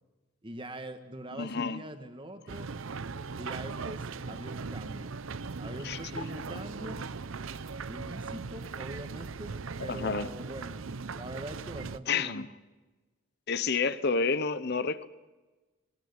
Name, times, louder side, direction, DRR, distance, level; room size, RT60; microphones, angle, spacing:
voice 1, 0.4-2.7 3.3-5.1 5.6-7.0 7.9-9.5 9.8-10.8 11.1-12.4, right 1 dB, 25° right, 8 dB, 1.7 m, -42 dB
voice 2, 1.4-1.8 5.8-6.2 9.9-10.3 12.1-12.5 13.5-15.1, left 5 dB, 50° left, 14 dB, 0.8 m, -30 dB
sound 1, 2.5-12.0, right 4 dB, 75° right, 0.7 m, -39 dB
19.5 x 18.0 x 9.7 m, 1.2 s
head